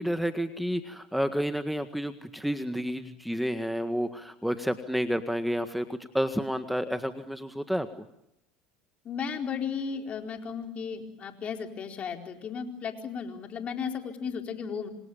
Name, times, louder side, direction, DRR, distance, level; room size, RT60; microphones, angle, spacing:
voice 1, 0.0-7.9, equal, ahead, 8 dB, 1.7 m, -30 dB
voice 2, 9.0-14.9, left 6 dB, 40° left, 4 dB, 4.4 m, -35 dB
27.0 x 26.5 x 7.2 m, 0.83 s
supercardioid pair, 90°, 3 cm